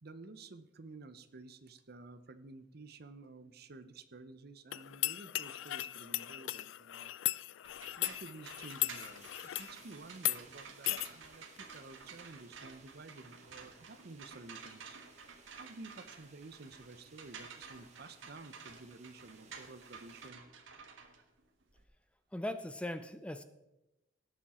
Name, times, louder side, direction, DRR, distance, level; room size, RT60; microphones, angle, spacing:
voice 1, 0.0-7.1 8.0-15.0 15.6-20.4, right 3 dB, 55° right, 12 dB, 0.8 m, -52 dB
sound 1, 4.7-9.7 10.2-10.4 10.9-11.1, left 17 dB, 80° left, 0.3 m, -37 dB
sound 2, 7.6-21.8, right 5 dB, 80° right, 1.4 m, -52 dB
sound 3, 8.8-20.3, right 4 dB, 35° right, 1.6 m, -62 dB
voice 2, 22.3-23.4, left 1 dB, 5° left, 10 dB, 0.5 m, -39 dB
17.5 x 7.2 x 4.3 m, 0.96 s
head